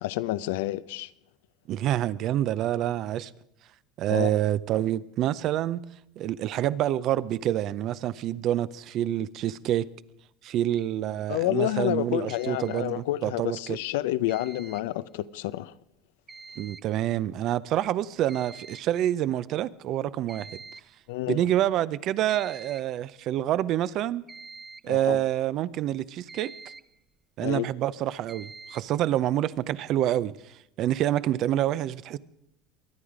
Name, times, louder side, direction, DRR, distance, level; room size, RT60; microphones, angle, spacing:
voice 1, 0.0-1.1 4.1-4.3 11.3-15.7 21.1-21.5 24.9-25.2 27.4-27.7, left 15 dB, 80° left, 0.6 m, -29 dB
voice 2, 1.7-3.3 4.0-5.8 6.2-9.9 10.4-13.8 16.6-20.6 21.3-24.2 24.8-26.5 27.4-32.2, right 12 dB, 50° right, 0.6 m, -27 dB
sound 1, 10.7-10.9 12.3-12.9 14.3-14.9 16.3-16.9 17.2-17.3 17.8-17.9 18.3-18.9 20.3-20.9 22.3-23.0 24.3-25.0 26.3-27.0 28.3-29.0, right 4 dB, 20° right, 0.8 m, -46 dB
23.0 x 9.5 x 5.0 m
supercardioid pair, 115°, 0 cm